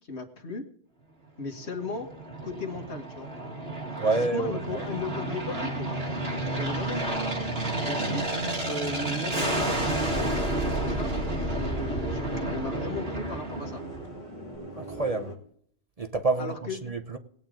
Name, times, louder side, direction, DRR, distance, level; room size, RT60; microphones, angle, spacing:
voice 1, 0.1-0.6 1.4-2.1 2.4-3.3 4.1-6.0 6.5-7.2 7.8-11.1 11.4-13.8 16.4-16.9, left 3 dB, 80° left, 1.9 m, -36 dB
Aircraft, 1.5-14.3, right 1 dB, 65° right, 2.2 m, -31 dB
voice 2, 4.0-4.8 14.8-15.3 16.0-16.5 16.8-17.2, right 3 dB, 35° right, 0.8 m, -28 dB
sound 1, 4.6-15.4, right 1 dB, 40° left, 2.7 m, -46 dB
19.0 x 8.9 x 3.8 m
omnidirectional pair, 1.1 m